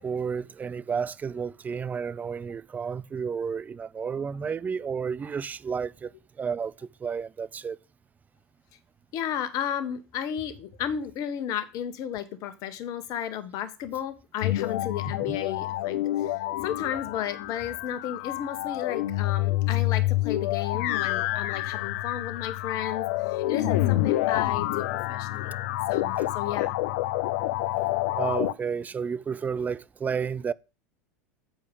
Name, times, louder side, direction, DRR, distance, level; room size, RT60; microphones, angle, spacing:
voice 1, 0.0-6.1 6.4-7.8 15.3-15.4 26.2-26.3 28.2-30.5, right 6 dB, 20° right, 0.5 m, -31 dB
voice 2, 9.1-16.3 16.6-25.5 25.9-26.7, left 9 dB, 50° left, 1.4 m, -33 dB
sound 1, 14.4-28.5, left 16 dB, 65° left, 0.6 m, -28 dB
8.8 x 4.9 x 7.0 m
hypercardioid pair, 100°, 8 cm